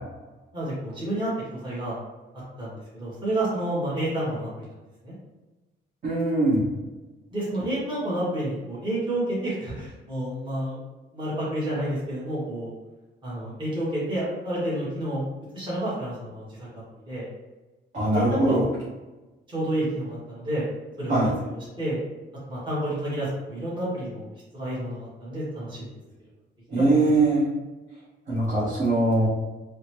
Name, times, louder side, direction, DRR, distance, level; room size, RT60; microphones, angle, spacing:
voice 1, 0.5-2.0 2.6-4.7 5.0-5.1 7.3-10.8 11.1-12.7 13.2-15.2 15.5-16.7 17.1-17.3 18.0-18.8 19.5-20.6 21.0-21.1 21.4-22.0 22.5-24.3 24.5-25.9 26.7-26.8, right 1 dB, 25° right, -9 dB, 1.4 m, -30 dB
voice 2, 6.0-6.6 17.9-18.7 21.1-21.3 26.7-27.5 28.3-29.3, right 2 dB, 40° right, -9 dB, 1.2 m, -21 dB
3.8 x 2.2 x 3.0 m, 1.1 s
cardioid pair, 115°, 20 cm